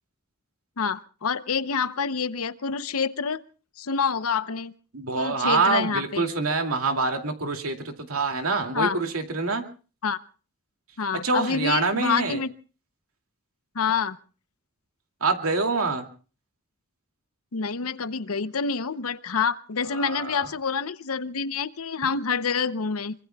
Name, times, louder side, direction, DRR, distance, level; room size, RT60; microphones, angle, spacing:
voice 1, 0.8-3.4 3.8-4.7 5.1-6.2 8.7-9.0 10.0-10.2 11.0-12.5 13.7-14.2 17.5-23.1, left 5 dB, 80° left, 14 dB, 0.8 m, -27 dB
voice 2, 4.9-9.6 11.2-12.4 15.2-16.1 20.0-20.5, right 3 dB, 75° right, 4 dB, 2.5 m, -25 dB
25.5 x 24.0 x 2.3 m, 0.37 s
head